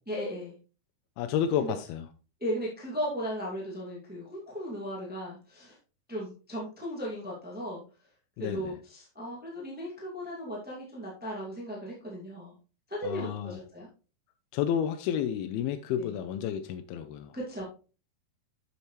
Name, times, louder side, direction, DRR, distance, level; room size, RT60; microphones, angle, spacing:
voice 1, 0.1-0.5 1.6-1.7 2.4-5.8 6.1-7.8 8.4-12.5 12.9-13.9 16.0-16.1 17.3-17.6, equal, 10° right, -4 dB, 0.5 m, -36 dB
voice 2, 1.2-2.0 8.4-8.7 13.0-13.5 14.5-17.3, left 9 dB, 85° left, 9 dB, 2.4 m, -31 dB
8.4 x 7.2 x 3.1 m, 0.34 s
omnidirectional pair, 4.5 m